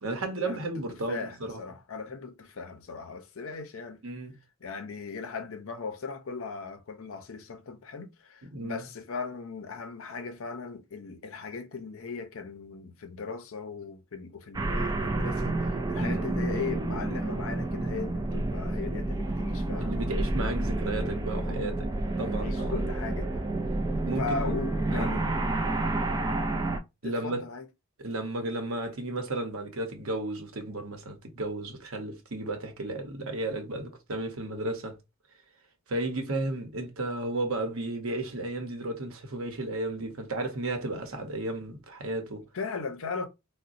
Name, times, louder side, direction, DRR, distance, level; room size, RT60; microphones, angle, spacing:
voice 1, 0.0-1.6 4.0-4.4 8.5-8.8 16.0-16.3 19.8-21.7 22.2-22.7 24.0-24.6 24.9-25.1 27.0-27.4 28.0-35.0 35.9-42.4, right 2 dB, 75° right, 0.8 m, -33 dB
voice 2, 0.9-4.0 4.6-20.2 21.4-21.8 22.2-23.4 24.2-25.3 27.0-27.7 42.5-43.3, left 4 dB, 65° left, 0.6 m, -38 dB
sound 1, 14.5-26.8, right 2 dB, 15° right, 0.3 m, -29 dB
3.9 x 2.1 x 2.5 m
head